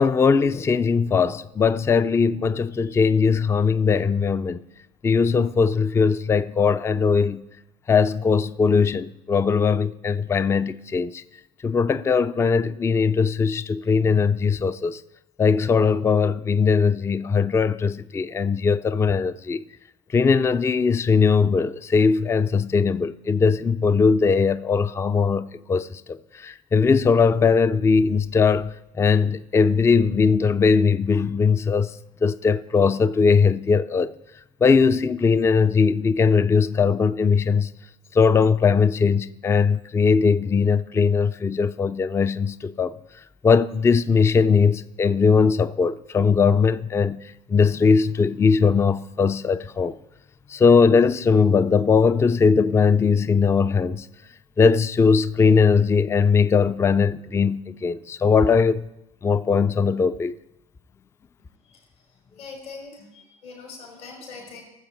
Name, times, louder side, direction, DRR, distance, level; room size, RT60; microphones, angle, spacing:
voice 1, 0.0-4.6 5.0-7.4 7.9-11.2 11.6-15.0 15.4-19.6 20.1-26.0 26.4-31.9 32.2-34.1 34.6-37.7 38.1-42.9 43.4-47.2 47.5-49.9 50.5-54.1 54.6-58.9 59.2-60.3, left 5 dB, 15° left, 0.3 m, -20 dB
voice 2, 62.4-64.6, left 4 dB, 70° left, 3.7 m, -41 dB
18.0 x 7.4 x 4.3 m
hypercardioid pair, 70°, 18 cm